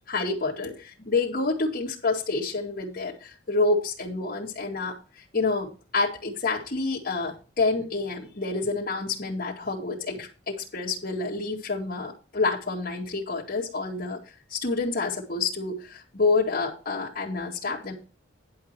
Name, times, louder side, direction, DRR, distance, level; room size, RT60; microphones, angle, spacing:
voice 1, 0.1-14.2 14.5-17.9, left 3 dB, 45° left, -5 dB, 2.4 m, -28 dB
11.0 x 4.9 x 6.0 m, 0.34 s
head